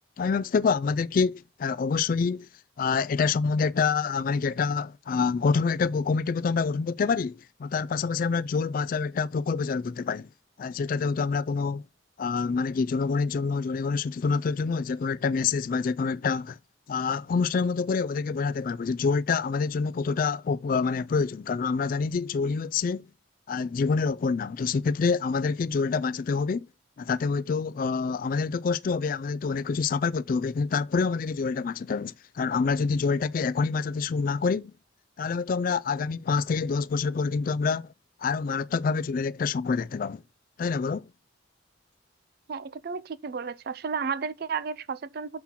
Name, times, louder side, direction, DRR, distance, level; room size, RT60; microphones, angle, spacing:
voice 1, 0.2-2.5 2.8-10.3 10.6-11.8 12.2-16.6 16.9-23.1 23.5-26.7 27.0-34.7 35.2-37.9 38.2-40.2 40.6-41.0, left 5 dB, 45° left, 0.3 m, -27 dB
voice 2, 42.5-45.4, right 5 dB, 50° right, 0.4 m, -33 dB
5.8 x 3.7 x 5.9 m
head